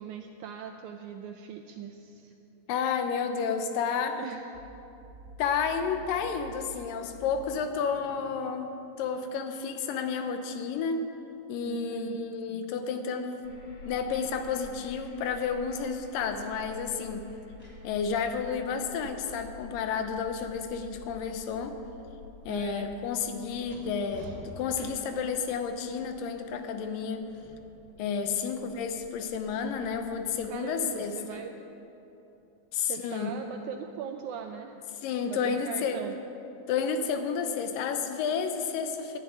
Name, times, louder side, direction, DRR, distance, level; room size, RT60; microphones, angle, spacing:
voice 1, 0.0-2.3 4.2-4.6 11.7-12.3 22.5-22.9 24.2-24.3 28.3-28.5 30.5-31.6 32.9-34.8 35.3-36.2, right 8 dB, 85° right, 5 dB, 1.7 m, -40 dB
voice 2, 2.7-4.2 5.4-8.7 9.0-11.1 11.5-13.5 13.8-17.2 17.8-21.8 22.5-27.3 28.0-31.4 32.7-33.3 35.0-36.0 36.7-39.2, left 6 dB, 80° left, 7 dB, 2.5 m, -31 dB
sound 1, 4.5-10.2, right 2 dB, 25° right, 3.9 m, -50 dB
sound 2, 13.4-30.5, left 3 dB, 55° left, 2.7 m, -50 dB
sound 3, 17.4-21.3 21.5-25.3 27.3-27.5, equal, 5° left, 2.9 m, -52 dB
12.0 x 7.4 x 9.5 m, 3.0 s
omnidirectional pair, 3.9 m